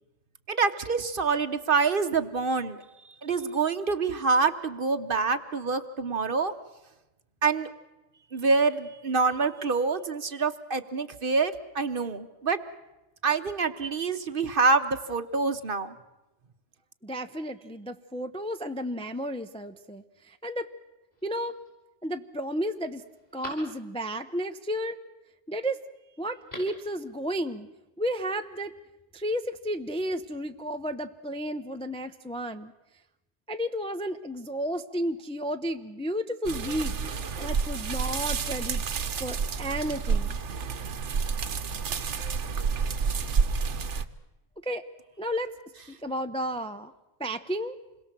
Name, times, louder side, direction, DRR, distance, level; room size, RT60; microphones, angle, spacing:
voice 1, 0.5-2.8 3.2-6.5 7.4-7.7 8.3-12.6 13.2-15.9, right 4 dB, 45° right, 10 dB, 1.1 m, -26 dB
voice 2, 17.0-20.7 21.2-21.6 22.0-23.0 23.3-25.0 25.5-25.8 26.2-27.7 28.0-28.7 29.1-32.7 33.5-37.0 37.4-38.8 39.2-40.4 44.6-44.8 45.2-45.5 45.9-46.9 47.2-47.8, equal, 5° left, 7 dB, 0.6 m, -32 dB
Telephone, 21.1-21.7 22.2-22.3 22.7-24.2 26.2-26.9 27.2-27.3, equal, 30° left, 7.5 m, -46 dB
sound 1, 36.4-44.0, right 5 dB, 65° right, 1.3 m, -29 dB
27.5 x 21.5 x 7.5 m, 1.0 s
omnidirectional pair, 1.3 m